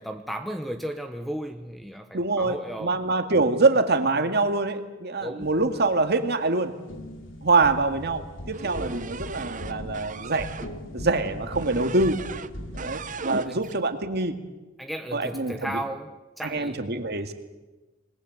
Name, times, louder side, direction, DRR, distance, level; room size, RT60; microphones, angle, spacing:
voice 1, 0.0-3.0 5.2-5.5 13.5-13.6 14.8-16.1 16.4-16.8, right 1 dB, ahead, 7 dB, 0.9 m, -34 dB
voice 2, 2.1-6.7 7.4-8.2 8.5-10.5 10.9-12.2 12.7-14.4 15.1-15.8 16.4-17.3, right 3 dB, 55° right, 7 dB, 2.1 m, -24 dB
sound 1, 5.4-6.5 6.9-13.7, equal, 70° left, 2.9 m, -40 dB
sound 2, 8.5-10.7 11.5-12.5 12.8-13.8, right 4 dB, 40° right, 0.8 m, -37 dB
27.0 x 20.5 x 7.9 m, 1.2 s
head